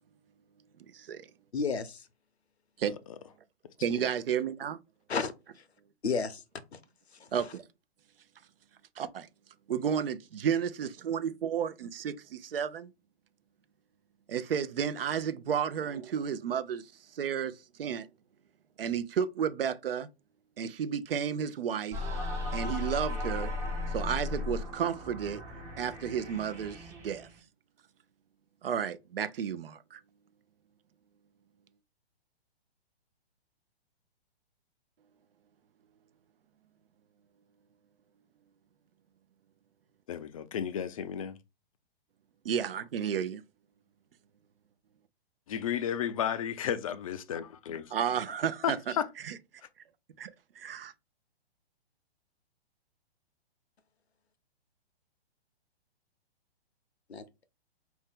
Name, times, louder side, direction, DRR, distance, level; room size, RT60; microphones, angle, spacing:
voice 1, 0.9-1.3 2.8-2.9 3.8-4.8 7.3-7.6 9.0-9.3 9.7-12.9 14.3-17.5 17.8-18.1 18.8-20.1 20.6-22.0 22.5-23.5 23.9-25.4 25.8-27.3 28.6-30.0 42.4-43.4 47.9-48.8 49.2-49.4 50.2-50.3 50.6-50.9, right 8 dB, 60° right, 0.6 m, -32 dB
voice 2, 1.5-2.1 5.1-5.7 6.0-6.4 6.7-6.8 7.1-7.5 57.1-57.2, left 5 dB, 80° left, 0.7 m, -33 dB
sound 1, 21.9-27.4, left 2 dB, 10° right, 0.6 m, -36 dB
voice 3, 40.1-41.4 45.5-47.9 48.6-49.1, left 9 dB, 35° left, 0.4 m, -33 dB
4.4 x 2.7 x 3.5 m
figure-of-eight pair, 120°, 32 cm